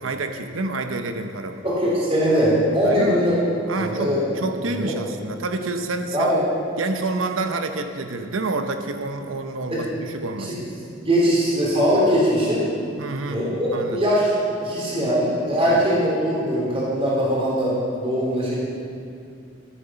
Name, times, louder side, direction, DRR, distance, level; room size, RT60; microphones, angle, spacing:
voice 1, 0.0-1.6 2.8-3.2 3.7-6.3 6.8-10.5 13.0-13.4 13.7-14.0 15.6-15.8, right 2 dB, 85° right, 7 dB, 0.8 m, -28 dB
voice 2, 1.6-3.3 3.8-4.2 4.7-4.9 6.1-6.4 9.7-9.8 10.5-10.6 11.0-12.7 13.3-14.3 14.6-17.7 18.0-18.6, equal, 30° right, -6 dB, 3.4 m, -21 dB
14.5 x 8.9 x 5.7 m, 2.4 s
head